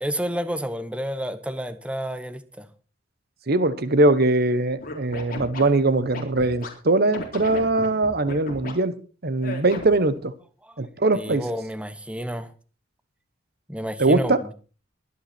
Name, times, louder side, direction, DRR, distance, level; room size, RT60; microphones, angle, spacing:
voice 1, 0.0-2.7 10.6-10.8 11.1-12.5 13.7-14.5, equal, 5° right, 1.0 m, -30 dB
voice 2, 3.5-9.0 9.2-10.3 10.8-11.4 14.0-14.4, right 2 dB, 55° right, 1.1 m, -21 dB
Scratching (performance technique), 4.8-6.7 7.1-8.7 9.4-10.1, left 2 dB, 50° left, 4.0 m, -35 dB
23.0 x 8.9 x 4.4 m
head